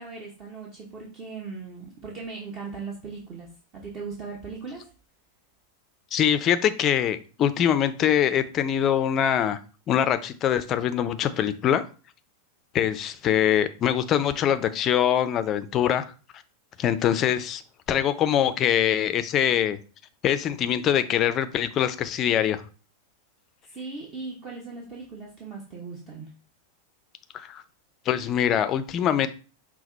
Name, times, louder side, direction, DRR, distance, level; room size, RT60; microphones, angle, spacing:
voice 1, 0.0-3.5 3.7-4.9 23.7-26.3, right 4 dB, 30° right, -1 dB, 1.0 m, -38 dB
voice 2, 6.1-9.6 9.9-11.8 12.7-16.1 16.8-17.6 17.9-19.8 20.2-22.6 27.3-27.6 28.1-29.3, left 10 dB, 30° left, 11 dB, 0.4 m, -23 dB
5.8 x 2.2 x 4.0 m, 0.36 s
figure-of-eight pair, 90°, 0 cm